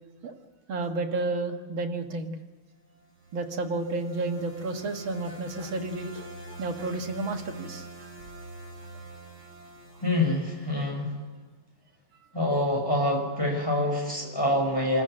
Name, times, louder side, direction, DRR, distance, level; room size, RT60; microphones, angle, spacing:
voice 1, 0.7-2.3 3.3-8.1, right 3 dB, 65° right, 4 dB, 2.4 m, -31 dB
sound 1, 2.9-11.1, right 3 dB, 50° right, 5.9 m, -45 dB
voice 2, 10.0-11.1 12.3-15.0, left 1 dB, 10° left, 0 dB, 5.6 m, -26 dB
27.5 x 14.0 x 7.6 m, 1.3 s
omnidirectional pair, 2.4 m